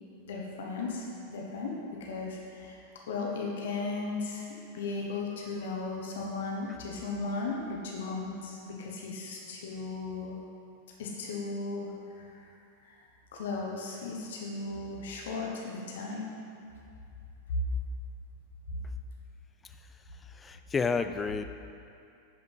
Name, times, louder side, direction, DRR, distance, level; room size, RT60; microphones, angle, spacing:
voice 1, 0.3-2.8 3.1-10.4 11.0-12.5 12.8-13.0 13.3-16.3 17.5-17.6 18.7-18.8, left 3 dB, 60° left, -1 dB, 1.1 m, -36 dB
voice 2, 20.2-21.4, left 5 dB, 15° left, 9 dB, 0.3 m, -31 dB
10.5 x 5.1 x 4.1 m, 2.5 s
figure-of-eight pair, 90°, 0 cm